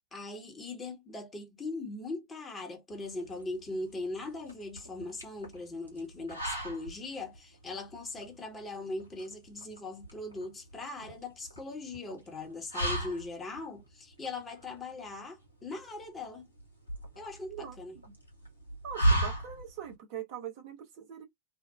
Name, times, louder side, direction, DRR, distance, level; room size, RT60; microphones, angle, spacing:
voice 1, 0.1-16.5 17.2-18.0, left 2 dB, 15° left, 0.9 m, -40 dB
sound 1, 2.9-19.9, right 1 dB, 90° right, 1.2 m, -36 dB
voice 2, 17.5-18.1 18.8-21.2, right 9 dB, 45° right, 0.9 m, -42 dB
2.7 x 2.1 x 2.2 m
figure-of-eight pair, 90°, 0 cm